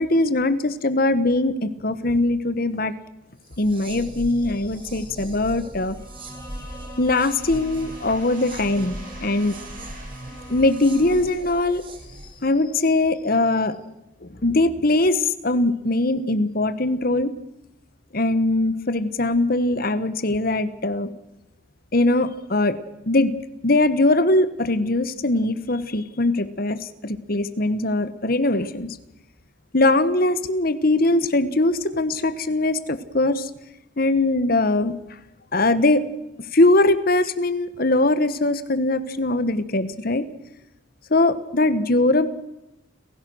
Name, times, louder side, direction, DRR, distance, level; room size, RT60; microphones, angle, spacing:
voice 1, 0.0-2.9 3.6-6.0 7.0-9.6 10.5-11.8 12.4-13.8 14.2-17.3 18.1-21.1 21.9-22.8 23.1-23.3 23.6-29.0 29.7-33.5 34.0-35.0 35.5-36.1 36.5-40.3 41.1-42.3, left 2 dB, 45° left, 12 dB, 1.2 m, -21 dB
sound 1, 3.5-12.5, right 1 dB, 25° right, 2.0 m, -39 dB
Bowed string instrument, 5.9-11.4, equal, 15° left, 4.5 m, -43 dB
sound 2, 7.1-12.6, right 2 dB, 40° right, 6.5 m, -47 dB
29.5 x 16.0 x 6.3 m, 0.95 s
head